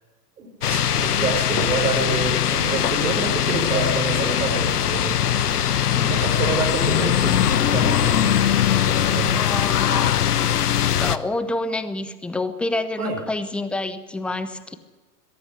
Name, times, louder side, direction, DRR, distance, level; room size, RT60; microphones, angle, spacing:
voice 1, 0.4-5.7 6.1-8.4 8.8-9.5 13.0-13.2, right 4 dB, 60° right, -3 dB, 5.8 m, -28 dB
sound 1, 0.6-11.2, left 10 dB, 65° left, 1.1 m, -21 dB
voice 2, 9.3-10.1 10.8-14.7, left 2 dB, ahead, 11 dB, 0.7 m, -28 dB
22.0 x 13.0 x 9.9 m, 1.3 s
figure-of-eight pair, 110°, 50 cm